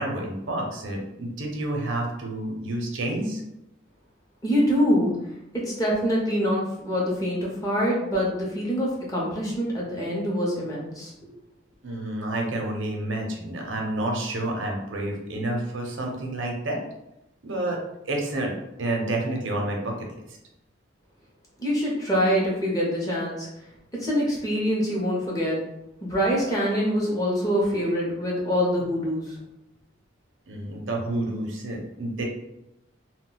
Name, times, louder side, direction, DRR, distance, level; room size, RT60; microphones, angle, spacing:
voice 1, 0.0-3.4 11.8-16.8 17.4-17.8 18.1-20.1 30.5-32.2, right 1 dB, 75° right, 1 dB, 0.7 m, -29 dB
voice 2, 4.4-5.1 5.5-11.1 21.6-23.5 24.0-25.6 26.0-29.4, equal, 20° left, -5 dB, 0.7 m, -25 dB
2.2 x 2.2 x 3.8 m, 0.88 s
head